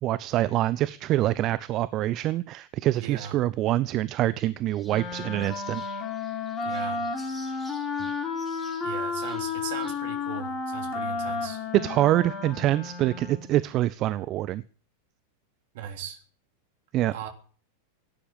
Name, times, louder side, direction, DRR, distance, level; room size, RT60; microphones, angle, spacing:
voice 1, 0.0-5.8 11.7-14.6 16.9-17.1, right 14 dB, 35° right, 0.7 m, -25 dB
voice 2, 3.0-3.4 6.6-7.1 8.8-11.7 15.7-16.2 17.1-17.3, right 9 dB, 50° right, 3.5 m, -38 dB
sound 1, 4.7-10.0, right 1 dB, ahead, 6.3 m, -52 dB
Wind instrument woodwind instrument, 4.8-13.5, left 4 dB, 25° left, 4.4 m, -32 dB
17.5 x 10.5 x 7.0 m
figure-of-eight pair, 90°, 0 cm